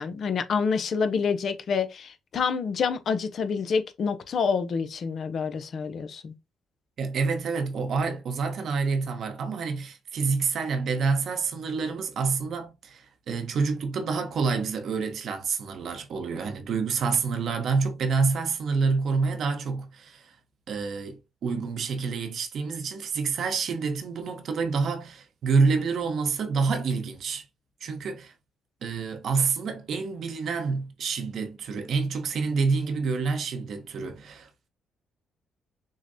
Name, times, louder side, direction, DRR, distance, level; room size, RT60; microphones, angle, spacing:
voice 1, 0.0-6.3, left 5 dB, 60° left, 0.6 m, -27 dB
voice 2, 7.0-20.3 20.7-27.4 27.8-28.3 28.8-34.7, right 4 dB, 65° right, 0.8 m, -28 dB
6.2 x 2.1 x 2.6 m
cardioid pair, 90°, 0 cm